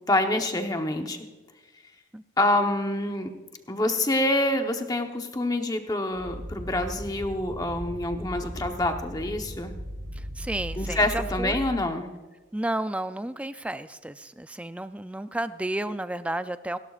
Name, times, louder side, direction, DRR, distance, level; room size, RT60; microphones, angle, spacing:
voice 1, 0.1-1.2 2.4-3.3 3.7-9.7 10.8-12.1, left 1 dB, 20° left, 5 dB, 0.9 m, -26 dB
Rocket taking off, 6.1-11.9, equal, 85° right, 5.8 m, -37 dB
voice 2, 10.2-11.6 12.5-16.8, right 1 dB, 5° right, 12 dB, 0.3 m, -32 dB
29.0 x 12.0 x 2.4 m, 1.2 s
head